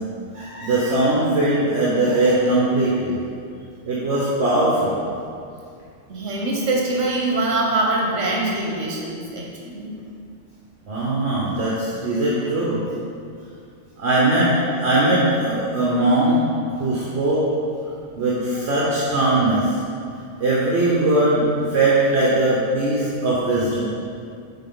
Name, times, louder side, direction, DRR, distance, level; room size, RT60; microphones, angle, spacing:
voice 1, 0.3-3.2 3.9-5.0 10.9-12.8 14.0-14.5 14.8-16.4 16.8-17.4 18.2-19.7 20.4-21.4 21.7-23.8, right 2 dB, 65° right, -7 dB, 1.3 m, -20 dB
voice 2, 6.1-9.9 21.7-21.8, right 2 dB, 80° right, -1 dB, 1.3 m, -23 dB
9.6 x 4.2 x 3.8 m, 2.4 s
omnidirectional pair, 1.2 m